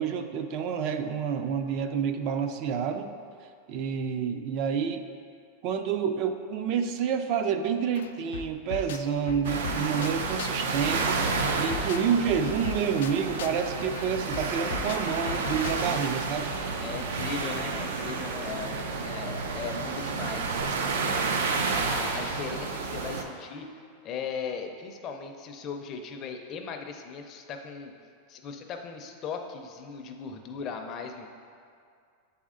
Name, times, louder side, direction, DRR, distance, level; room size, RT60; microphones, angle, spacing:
voice 1, 0.0-3.2 3.7-5.1 5.6-16.5, right 7 dB, 40° right, 7 dB, 0.3 m, -29 dB
sound 1, 7.7-7.8 7.9-10.7 10.9-16.1, left 7 dB, 90° left, 0.3 m, -39 dB
sound 2, 9.4-23.2, right 4 dB, 85° right, 0.6 m, -30 dB
voice 2, 16.8-23.7 24.0-27.9 28.3-31.3, left 5 dB, 25° left, 4 dB, 0.5 m, -38 dB
7.6 x 4.2 x 3.7 m, 2.3 s
supercardioid pair, 165°, 0 cm